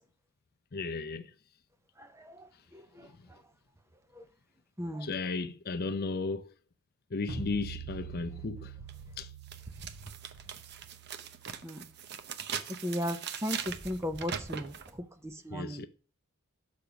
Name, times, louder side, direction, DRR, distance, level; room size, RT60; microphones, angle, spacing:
voice 1, 0.7-1.3 3.0-3.3 5.0-6.5 7.1-8.7 9.2-9.3 15.5-15.9, left 3 dB, 45° left, 0.6 m, -35 dB
voice 2, 2.0-2.3 2.7-3.1 4.2-4.3 4.8-5.1 11.6-11.8 12.8-14.7 15.2-15.9, equal, 10° right, 0.7 m, -36 dB
sound 1, 7.3-12.3, right 5 dB, 70° right, 2.1 m, -45 dB
sound 2, 8.9-9.0 9.5-14.9, right 8 dB, 50° right, 0.7 m, -40 dB
6.7 x 5.2 x 5.6 m
head